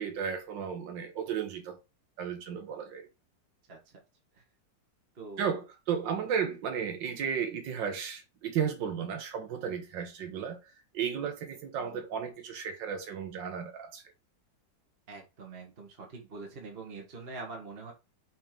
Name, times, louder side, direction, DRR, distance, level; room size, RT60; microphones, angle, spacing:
voice 1, 0.0-1.8 2.2-3.1 5.4-14.0, right 7 dB, 80° right, 1.5 m, -34 dB
voice 2, 5.1-5.5 11.9-12.0 15.1-17.9, right 3 dB, 35° right, 1.6 m, -44 dB
6.3 x 3.5 x 4.4 m
omnidirectional pair, 2.0 m